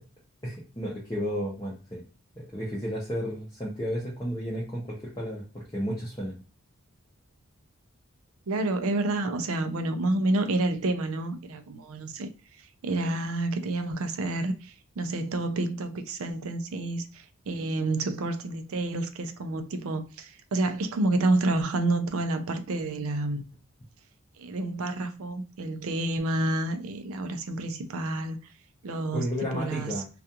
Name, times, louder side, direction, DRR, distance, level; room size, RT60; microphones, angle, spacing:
voice 1, 0.4-2.0 2.4-6.4 29.1-30.1, equal, 15° left, 0.5 m, -32 dB
voice 2, 8.5-12.3 12.8-23.4 24.4-28.4 28.8-29.9, right 2 dB, 70° right, 0.4 m, -29 dB
2.3 x 2.3 x 2.8 m
head